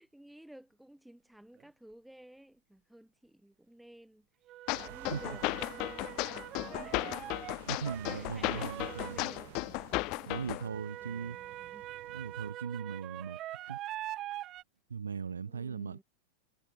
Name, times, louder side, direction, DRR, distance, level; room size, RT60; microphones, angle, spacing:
voice 1, 0.0-4.3 4.7-7.4 8.0-11.9 15.5-16.0, right 1 dB, ahead, 5.7 m, -54 dB
sound 1, 1.6-1.7 4.5-9.5 10.6-14.6, right 14 dB, 35° right, 3.9 m, -44 dB
sound 2, 4.7-10.7, left 26 dB, 40° left, 0.9 m, -35 dB
sound 3, 4.7-12.5, right 20 dB, 50° right, 2.9 m, -53 dB
voice 2, 7.7-9.3 10.3-11.4 12.1-13.4 13.7-13.8 14.9-16.0, right 6 dB, 70° right, 0.8 m, -39 dB
figure-of-eight pair, 90°, 0 cm